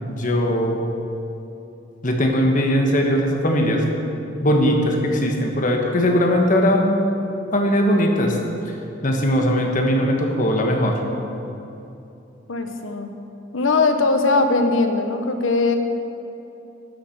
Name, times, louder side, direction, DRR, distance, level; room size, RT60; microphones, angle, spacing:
voice 1, 0.1-0.8 2.0-3.9 4.4-7.0 7.5-8.4 8.6-11.0, equal, 40° left, 2 dB, 1.3 m, -19 dB
voice 2, 12.5-13.1 13.5-15.8, left 3 dB, 80° left, 6 dB, 1.0 m, -20 dB
12.0 x 7.3 x 6.5 m, 2.8 s
head